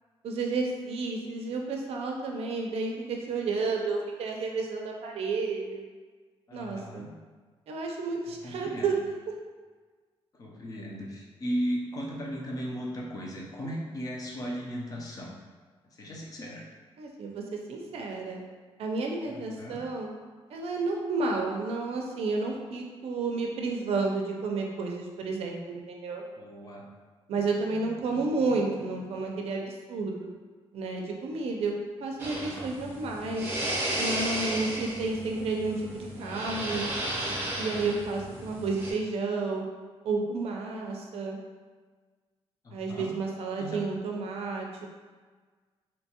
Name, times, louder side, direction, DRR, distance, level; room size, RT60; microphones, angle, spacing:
voice 1, 0.2-5.8 6.5-7.1 7.7-9.1 17.0-18.4 18.8-20.1 20.5-26.2 27.3-30.3 30.7-31.7 32.0-33.5 34.0-36.9 37.6-39.6 40.0-41.4 42.7-44.9, right 3 dB, 75° right, 1 dB, 0.4 m, -31 dB
voice 2, 6.5-7.1 8.4-8.9 10.4-15.4 15.9-16.6 19.3-19.8 26.4-26.9 42.6-43.1 43.6-43.8, equal, 35° left, -2 dB, 0.5 m, -36 dB
sound 1, 32.2-38.9, right 1 dB, 20° right, 0.6 m, -34 dB
2.7 x 2.2 x 2.8 m, 1.5 s
wide cardioid pair, 145°, 10 cm